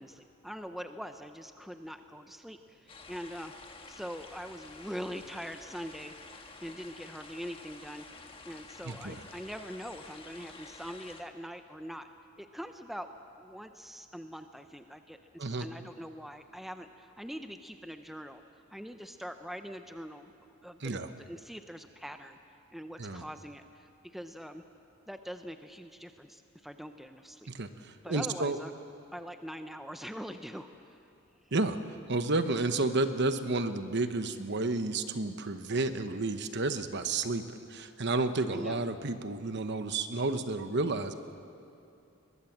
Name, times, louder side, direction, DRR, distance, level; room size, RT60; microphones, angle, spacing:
voice 1, 0.0-3.5 3.9-6.1 6.6-8.1 8.4-12.1 12.4-13.1 13.4-20.3 20.6-22.4 22.7-24.6 25.1-27.5 28.0-28.7 29.1-31.0 31.4-31.5 38.5-38.8, equal, ahead, 7 dB, 0.6 m, -43 dB
sound 1, 2.9-11.2, left 3 dB, 25° left, 1.4 m, -50 dB
voice 2, 8.9-9.2 15.4-15.7 20.8-21.1 23.0-23.2 27.5-28.6 31.5-31.8 32.1-41.1, right 2 dB, 50° right, 9 dB, 1.0 m, -31 dB
23.0 x 21.0 x 7.4 m, 2.6 s
head